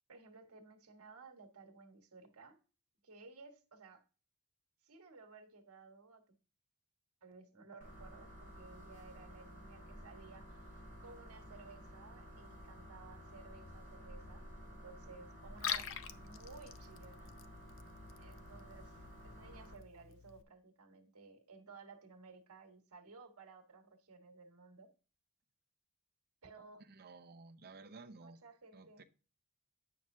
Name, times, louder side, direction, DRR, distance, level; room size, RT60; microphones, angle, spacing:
voice 1, 0.1-2.6 3.0-4.0 4.8-6.4 7.2-17.3 18.2-24.9 26.4-26.9 28.2-29.0, right 4 dB, 70° right, 1.5 m, -57 dB
sound 1, 7.8-19.7, equal, 40° left, 3.3 m, -53 dB
Liquid, 15.4-20.4, left 9 dB, 60° left, 0.5 m, -46 dB
voice 2, 26.9-28.4 28.7-29.0, right 3 dB, 45° right, 0.7 m, -54 dB
9.0 x 6.3 x 2.7 m
head